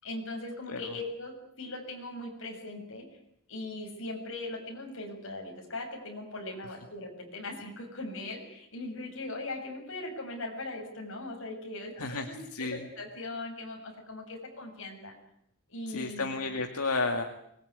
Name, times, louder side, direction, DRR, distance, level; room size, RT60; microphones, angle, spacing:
voice 1, 0.0-3.1 3.5-15.1 15.7-16.3, left 2 dB, 60° left, 2 dB, 6.9 m, -39 dB
voice 2, 12.0-12.8 15.9-17.2, left 3 dB, 85° left, 4 dB, 2.1 m, -32 dB
24.0 x 20.5 x 9.5 m, 0.74 s
head